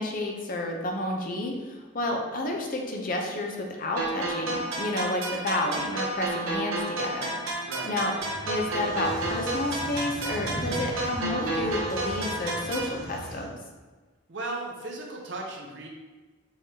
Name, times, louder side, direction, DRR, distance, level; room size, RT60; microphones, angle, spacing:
voice 1, 0.0-7.3 7.8-8.1 8.5-13.5, left 1 dB, 40° left, 1 dB, 0.6 m, -30 dB
sound 1, 4.0-13.0, right 2 dB, 80° right, 1.0 m, -31 dB
voice 2, 7.7-8.0 14.3-15.9, right 2 dB, 60° right, 0 dB, 0.7 m, -36 dB
sound 2, 8.2-13.4, equal, ahead, 1.3 m, -38 dB
5.6 x 3.3 x 2.8 m, 1.3 s
head